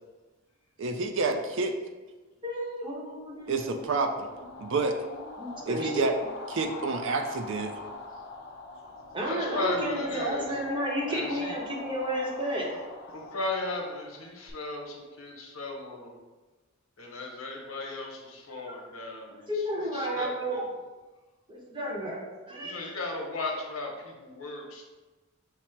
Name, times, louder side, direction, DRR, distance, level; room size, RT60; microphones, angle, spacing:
voice 1, 0.8-1.7 3.5-4.3 4.6-5.0 5.7-6.1 6.5-7.8, right 3 dB, 65° right, 6 dB, 0.4 m, -28 dB
voice 2, 2.4-4.1 4.7-5.0 5.2-6.1 9.1-12.7 18.7-18.8 19.5-20.6 21.5-22.7, equal, 25° right, -2 dB, 0.8 m, -32 dB
sound 1, 3.4-14.5, left 3 dB, 55° left, 0.6 m, -43 dB
voice 3, 9.2-10.6 11.1-11.6 13.1-16.2 17.0-20.8 22.6-24.9, left 2 dB, 90° left, 0 dB, 0.9 m, -36 dB
5.7 x 2.1 x 4.4 m, 1.2 s
head